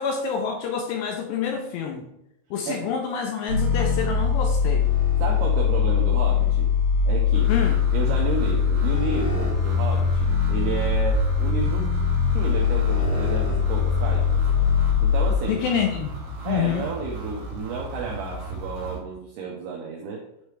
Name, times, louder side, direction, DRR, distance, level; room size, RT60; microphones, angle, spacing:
voice 1, 0.0-2.1 2.5-4.9 7.5-7.8 15.5-16.1 16.5-16.8, left 7 dB, 85° left, 3 dB, 2.4 m, -27 dB
sound 1, 3.5-15.3, left 6 dB, 65° left, 1.8 m, -22 dB
voice 2, 5.2-6.7 7.1-7.5 7.9-11.9 12.3-14.4 15.0-15.6 16.4-20.2, right 4 dB, 80° right, -2 dB, 2.3 m, -31 dB
sound 2, 7.3-19.0, right 2 dB, 60° right, 2.0 m, -36 dB
9.2 x 3.2 x 3.3 m, 0.81 s
omnidirectional pair, 5.4 m